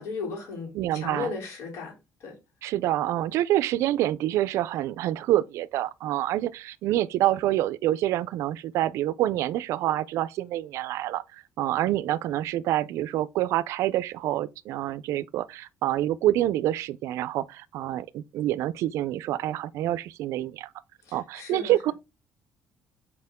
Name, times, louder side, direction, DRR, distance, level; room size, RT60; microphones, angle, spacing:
voice 1, 0.0-1.9 2.2-2.3 21.0-21.7, left 4 dB, 80° left, 3.3 m, -35 dB
voice 2, 0.7-1.3 2.6-20.7 21.1-21.9, right 14 dB, 75° right, 0.4 m, -27 dB
6.7 x 4.3 x 3.6 m
cardioid pair, 150°, 5 cm